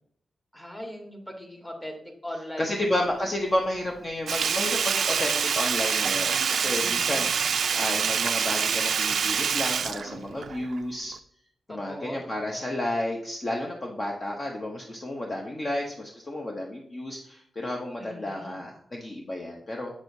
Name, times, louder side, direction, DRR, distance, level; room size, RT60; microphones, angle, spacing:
voice 1, 0.5-2.0 2.2-2.9 6.8-7.3 11.7-12.7 18.0-18.6, equal, 15° left, 2 dB, 1.3 m, -40 dB
voice 2, 2.6-11.2 11.7-19.9, left 1 dB, 30° left, 0 dB, 0.7 m, -31 dB
Sink (filling or washing), 4.3-10.8 11.1-11.2, right 7 dB, 70° right, 0.3 m, -26 dB
7.2 x 6.2 x 2.6 m, 0.69 s
wide cardioid pair, 130°, 0 cm